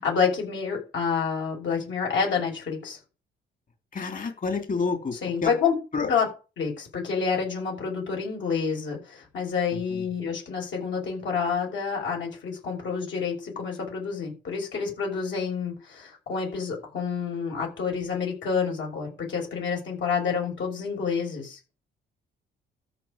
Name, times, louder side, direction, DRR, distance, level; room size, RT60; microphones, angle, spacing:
voice 1, 0.0-3.0 5.2-5.7 6.1-6.3 6.6-21.6, left 6 dB, 70° left, 0 dB, 6.2 m, -28 dB
voice 2, 3.9-5.1 5.4-5.5 5.9-6.1, left 4 dB, 45° left, 7 dB, 3.1 m, -28 dB
13.5 x 4.8 x 8.8 m, 0.32 s
cardioid pair, 90°, 20 cm